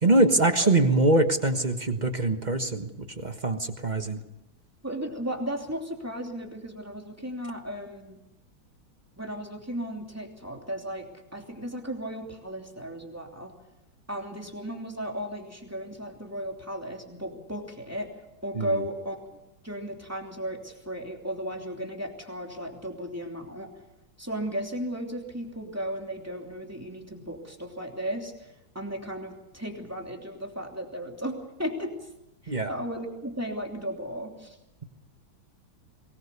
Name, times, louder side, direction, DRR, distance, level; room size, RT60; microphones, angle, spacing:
voice 1, 0.0-4.2 18.5-18.8 32.5-32.7, right 2 dB, 25° right, 7 dB, 1.2 m, -23 dB
voice 2, 4.8-8.2 9.2-13.5 14.1-18.1 18.4-19.2 19.6-23.7 24.2-28.5 28.7-31.9 32.4-34.6, equal, 5° right, 1 dB, 2.9 m, -35 dB
23.0 x 20.0 x 6.9 m, 0.90 s
omnidirectional pair, 2.2 m